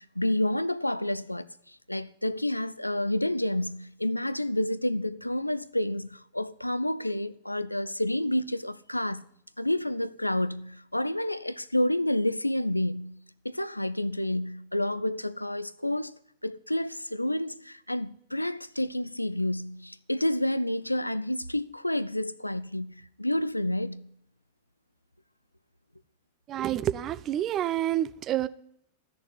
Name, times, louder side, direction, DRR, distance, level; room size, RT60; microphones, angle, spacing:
voice 1, 0.0-9.2 9.6-16.1 16.4-24.1, left 1 dB, 85° left, 0.4 m, -29 dB
voice 2, 26.5-28.5, right 12 dB, 30° right, 0.6 m, -28 dB
13.5 x 6.7 x 10.0 m
figure-of-eight pair, 90°, 0 cm